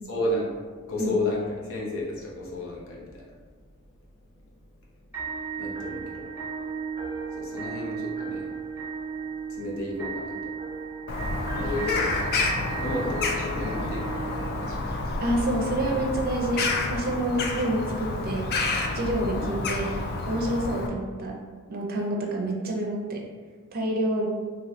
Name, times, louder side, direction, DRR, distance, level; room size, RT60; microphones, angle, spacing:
voice 1, 0.1-0.5 0.9-3.2 5.6-6.3 7.4-8.5 9.6-10.5 11.5-12.1 12.8-14.3 14.6-15.0 19.4-19.5, left 2 dB, 65° left, -3 dB, 0.7 m, -32 dB
sound 1, 5.1-15.2, right 5 dB, 10° right, 1.1 m, -35 dB
Bird vocalization bird call bird song, 11.1-20.9, left 3 dB, 45° left, 0.3 m, -29 dB
voice 2, 15.2-18.5 18.9-20.0 20.2-21.4 21.7-23.2 23.7-24.3, right 1 dB, 45° right, 0 dB, 0.5 m, -28 dB
2.6 x 2.6 x 3.1 m, 1.5 s
head